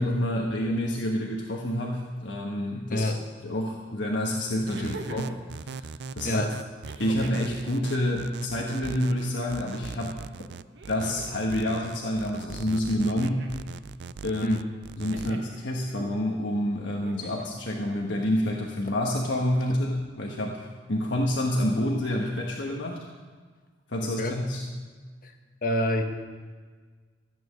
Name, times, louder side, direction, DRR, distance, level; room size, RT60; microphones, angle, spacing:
voice 1, 0.0-3.0 3.4-5.9 6.1-6.5 7.0-10.2 10.9-13.5 14.2-14.6 15.0-23.0 23.9-24.6, left 1 dB, 75° left, -1 dB, 1.3 m, -28 dB
voice 2, 2.9-3.2 4.8-5.0 6.2-6.5 14.4-14.7 24.2-24.4 25.2-25.3 25.6-26.0, left 1 dB, 45° left, 5 dB, 1.3 m, -27 dB
sound 1, 3.6-3.7 4.7-5.4 6.8-7.5 8.8-9.5 10.7-11.5 12.9-13.6 15.1-15.6 16.9-17.5 18.8-18.9, right 2 dB, 80° right, 1.5 m, -45 dB
sound 2, 4.7-15.3, right 5 dB, 60° right, 0.3 m, -40 dB
14.5 x 8.9 x 6.4 m, 1.5 s
head